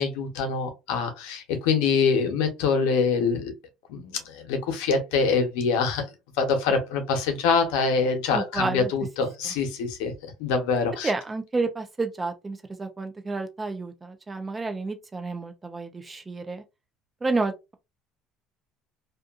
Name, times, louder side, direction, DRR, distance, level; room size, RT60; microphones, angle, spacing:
voice 1, 0.0-3.5 3.9-6.0 6.4-10.1 10.4-11.1, left 5 dB, 90° left, 0.8 m, -25 dB
voice 2, 8.3-8.9 9.4-9.5 11.0-16.6 17.2-17.7, right 3 dB, 20° right, 0.5 m, -30 dB
2.5 x 2.5 x 2.4 m
cardioid pair, 115°, 0 cm